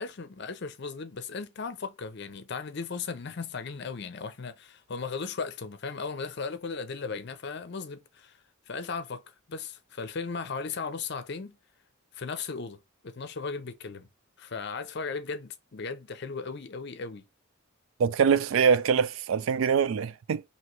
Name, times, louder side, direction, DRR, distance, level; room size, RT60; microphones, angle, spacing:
voice 1, 0.0-8.4 8.7-9.2 9.5-11.6 12.1-12.8 13.0-14.1 14.4-17.2, left 4 dB, 55° left, 0.6 m, -36 dB
voice 2, 18.0-20.4, right 6 dB, 70° right, 0.3 m, -24 dB
3.0 x 2.8 x 4.3 m
head